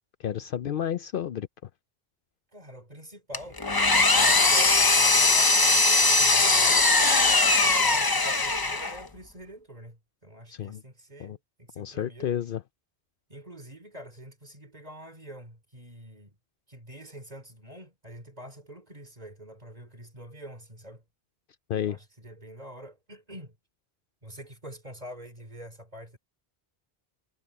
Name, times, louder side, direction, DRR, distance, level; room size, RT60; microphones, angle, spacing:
voice 1, 0.2-1.5 10.5-10.8 11.2-11.4 11.8-12.6 21.7-22.0, left 10 dB, 60° left, 0.7 m, -31 dB
voice 2, 2.5-12.3 13.3-16.3 16.7-21.0 21.8-23.6 24.2-26.2, equal, 40° right, 4.1 m, -46 dB
Engine, 3.3-9.1, left 3 dB, 25° left, 0.8 m, -20 dB
omnidirectional pair, 1.0 m